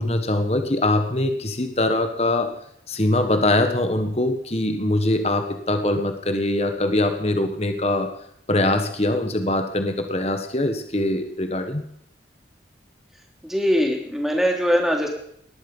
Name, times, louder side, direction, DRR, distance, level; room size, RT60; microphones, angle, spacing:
voice 1, 0.0-2.5 2.9-8.1 8.5-11.8, left 1 dB, 35° left, 7 dB, 1.5 m, -22 dB
voice 2, 13.4-15.1, equal, ahead, 1 dB, 3.1 m, -21 dB
20.0 x 13.0 x 5.5 m, 0.72 s
head